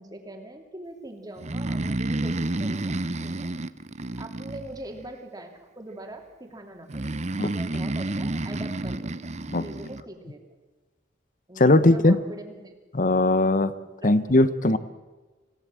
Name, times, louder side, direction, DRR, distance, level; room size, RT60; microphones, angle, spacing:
voice 1, 0.0-2.9 3.2-3.5 4.2-7.1 7.5-9.4 9.6-10.4 11.5-12.7 13.7-14.3 14.7-14.8, right 1 dB, 20° right, 3 dB, 2.9 m, -42 dB
Breathing, 1.4-5.1 6.9-10.0, right 2 dB, 35° right, 0.8 m, -30 dB
voice 2, 11.6-12.2 12.9-13.7 14.0-14.8, left 2 dB, 45° left, 14 dB, 1.0 m, -19 dB
27.0 x 17.0 x 7.6 m, 1.3 s
head